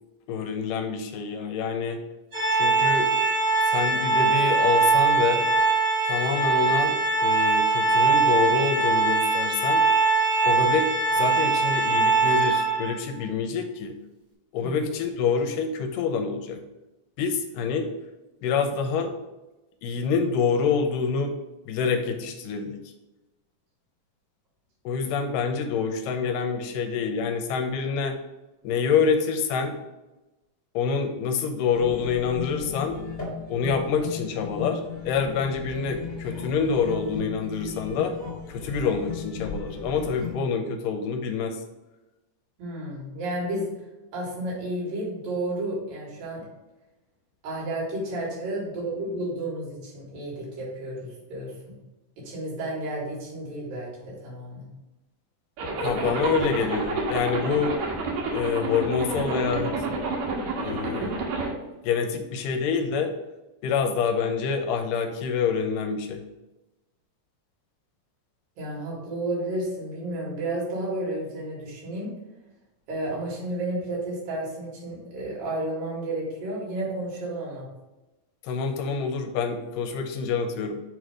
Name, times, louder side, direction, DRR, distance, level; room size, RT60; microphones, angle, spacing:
voice 1, 0.3-2.0 2.5-3.1 3.6-5.5 6.1-9.8 10.5-14.0 14.5-16.6 17.2-17.9 18.4-19.1 19.8-21.4 21.7-22.8 24.9-28.2 28.6-29.8 30.7-33.0 33.5-38.1 38.5-41.6 55.8-57.8 58.3-59.8 60.5-61.2 61.8-63.1 63.6-66.2 78.4-80.8, left 5 dB, 80° left, 5 dB, 2.1 m, -26 dB
Organ, 2.3-13.0, right 4 dB, 40° right, 1.6 m, -22 dB
sound 1, 31.7-40.4, left 5 dB, 30° left, 1.3 m, -36 dB
voice 2, 42.6-43.7 44.1-46.5 47.4-51.8 52.2-54.7 68.6-72.1 72.9-77.7, right 1 dB, 90° right, -5 dB, 3.8 m, -32 dB
Zipper (clothing), 55.6-61.5, right 3 dB, 65° right, 2.2 m, -29 dB
6.6 x 3.2 x 5.0 m, 1.0 s
omnidirectional pair, 4.0 m